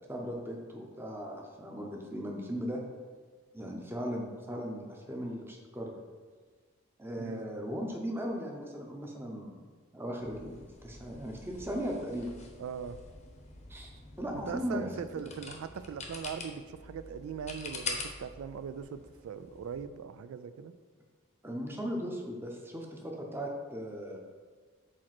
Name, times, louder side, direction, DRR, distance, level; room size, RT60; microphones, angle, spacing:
voice 1, 0.1-2.8 3.5-6.0 7.0-9.6 9.9-12.3 13.7-13.9 14.2-14.9 21.4-24.2, equal, 10° right, 0 dB, 0.7 m, -37 dB
sound 1, 10.2-19.8, left 4 dB, 35° left, 0.7 m, -45 dB
voice 2, 12.6-13.0 14.5-20.7, right 7 dB, 85° right, 12 dB, 0.3 m, -40 dB
5.0 x 4.2 x 5.9 m, 1.5 s
head